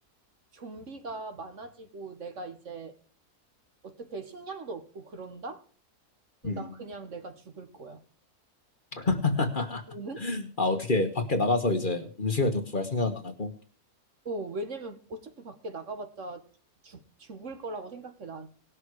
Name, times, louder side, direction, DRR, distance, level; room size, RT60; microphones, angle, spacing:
voice 1, 0.5-2.9 3.8-5.6 6.4-8.0 9.9-10.3 14.2-16.4 16.8-18.5, right 2 dB, 55° right, 1.7 m, -40 dB
voice 2, 8.9-9.8 10.2-13.5, left 2 dB, 35° left, 1.3 m, -27 dB
19.0 x 6.6 x 4.7 m
omnidirectional pair, 1.5 m